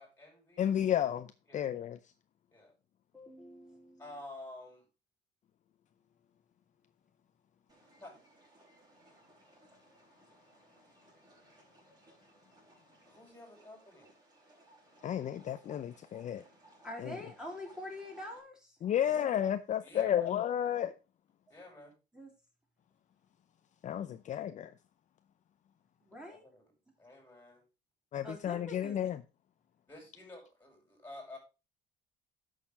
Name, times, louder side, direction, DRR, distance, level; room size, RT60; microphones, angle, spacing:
voice 1, 0.0-0.7 1.5-1.7 2.5-2.7 4.0-4.8 8.0-8.2 13.1-14.1 19.0-19.3 19.8-20.3 21.5-21.9 26.3-26.6 27.0-27.6 29.9-31.4, left 2 dB, 10° left, 5.4 m, -50 dB
voice 2, 0.6-1.3 1.5-2.0 15.0-16.4 17.0-17.2 18.8-20.9 23.8-24.7 28.1-29.2, left 10 dB, 40° left, 0.6 m, -32 dB
voice 3, 3.1-4.1 16.8-18.8 22.1-22.3 26.0-26.4 28.2-29.1, left 1 dB, 5° right, 3.4 m, -45 dB
sound 1, 7.7-18.4, right 1 dB, 20° right, 5.5 m, -62 dB
11.5 x 6.5 x 3.6 m
cardioid pair, 125°, 18 cm